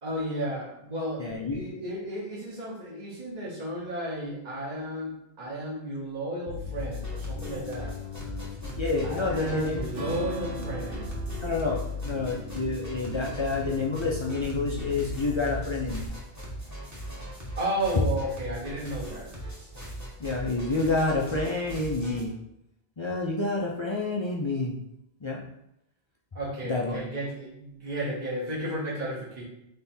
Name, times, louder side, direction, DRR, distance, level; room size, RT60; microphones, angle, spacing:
voice 1, 0.0-8.0 9.0-11.1 17.6-19.3 26.3-29.4, right 1 dB, 40° right, -6 dB, 1.2 m, -33 dB
voice 2, 1.2-1.6 8.6-9.9 11.4-16.1 20.2-22.3 23.0-24.8 25.2-25.4 26.6-27.1, left 3 dB, 40° left, -2 dB, 0.4 m, -29 dB
Bass guitar, 6.5-16.1, left 4 dB, 80° left, 0.9 m, -38 dB
sound 1, 6.8-22.2, right 1 dB, 15° right, 1.2 m, -40 dB
Strum, 9.9-14.1, right 1 dB, 80° right, 1.6 m, -41 dB
3.6 x 3.4 x 4.3 m, 0.83 s
omnidirectional pair, 1.2 m